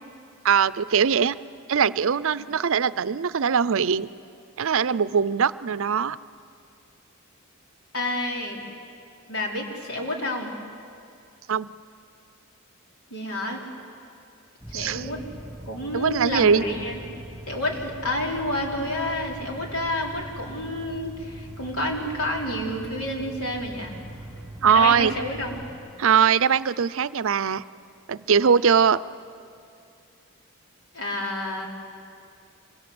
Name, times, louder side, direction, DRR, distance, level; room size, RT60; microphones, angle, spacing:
voice 1, 0.4-1.4 1.7-4.1 4.6-6.2 11.5-11.7 14.7-15.1 15.9-16.6 24.6-25.2 26.0-27.6 28.1-29.0, right 7 dB, 65° right, 17 dB, 0.5 m, -21 dB
voice 2, 7.9-8.6 9.3-10.5 13.1-13.6 14.7-15.2 15.7-17.0 17.5-23.9 24.7-25.6 30.9-31.7, left 1 dB, 80° left, 0 dB, 3.9 m, -29 dB
sound 1, 14.6-25.8, right 1 dB, 5° right, 3.2 m, -41 dB
25.5 x 23.0 x 7.9 m, 2.4 s
head